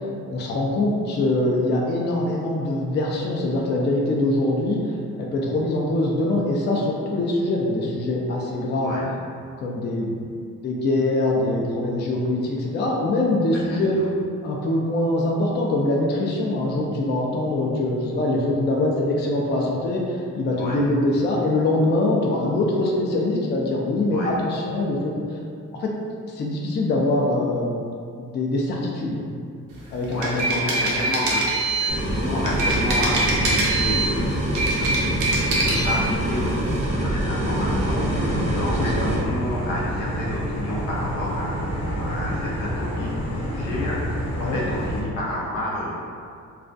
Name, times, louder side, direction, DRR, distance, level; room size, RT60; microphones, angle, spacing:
voice 1, 0.3-4.8 5.2-8.9 9.6-10.3 10.6-14.0 14.4-25.1 25.8-25.9 26.3-27.8 28.2-29.2 29.9-30.8 38.8-39.1 44.4-44.6, left 2 dB, 35° left, -2 dB, 0.4 m, -23 dB
voice 2, 13.5-14.0 20.6-20.8 24.1-24.3 29.8-46.0, left 1 dB, 85° left, -5 dB, 0.7 m, -31 dB
sound 1, 30.0-32.0 32.5-34.1 34.5-36.0, right 2 dB, 85° right, 0.6 m, -23 dB
sound 2, 31.9-39.2, right 1 dB, 25° right, 0.5 m, -25 dB
sound 3, 37.3-45.0, equal, 20° left, 0.9 m, -28 dB
2.3 x 2.2 x 2.5 m, 2.3 s
cardioid pair, 90°, 30 cm